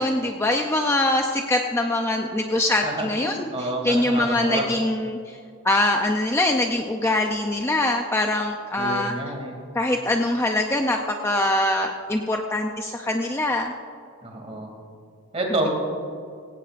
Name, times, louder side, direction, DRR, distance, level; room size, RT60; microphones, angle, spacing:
voice 1, 0.0-5.4 5.6-9.1 9.7-13.7, left 1 dB, 10° left, 3 dB, 0.5 m, -23 dB
voice 2, 2.8-4.7 8.7-9.6 14.2-14.7 15.3-15.7, right 1 dB, 30° right, 1 dB, 2.6 m, -29 dB
17.5 x 16.5 x 2.5 m, 2.4 s
head